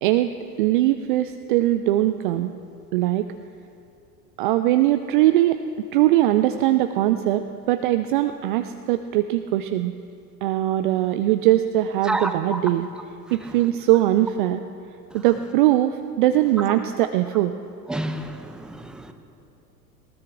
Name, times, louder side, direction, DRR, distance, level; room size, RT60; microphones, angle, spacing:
voice 1, 0.0-0.3 0.6-2.5 2.9-3.3 4.4-5.6 5.9-9.9 10.4-12.9 13.3-14.6 15.1-17.5, right 14 dB, 35° right, 9 dB, 0.5 m, -21 dB
voice 2, 12.1-12.6 17.9-19.1, right 2 dB, ahead, 8 dB, 0.7 m, -29 dB
19.5 x 19.0 x 3.7 m, 2.5 s
figure-of-eight pair, 85°, 50 cm